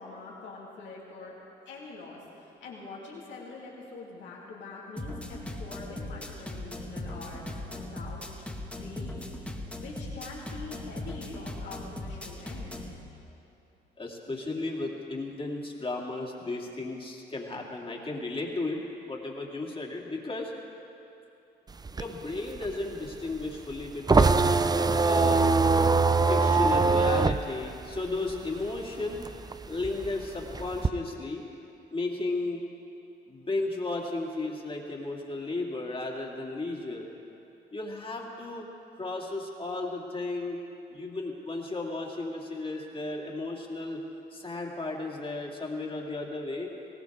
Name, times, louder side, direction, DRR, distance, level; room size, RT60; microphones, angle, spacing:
voice 1, 0.0-1.4 1.6-8.2 8.6-12.9, left 3 dB, 85° left, -4 dB, 3.0 m, -44 dB
sound 1, 5.0-13.0, left 1 dB, 5° left, 1.9 m, -39 dB
voice 2, 14.0-20.5 21.9-24.5 25.0-25.6 26.3-29.2 29.7-31.4 31.9-32.7 33.3-37.1 37.7-38.7 38.9-40.6 40.9-44.0 44.3-46.7, left 2 dB, 30° left, -1 dB, 2.6 m, -34 dB
sound 2, 21.7-28.8 29.1-30.9, right 4 dB, 20° right, 0.5 m, -23 dB
20.5 x 17.5 x 3.7 m, 2.8 s
cardioid pair, 70°, 19 cm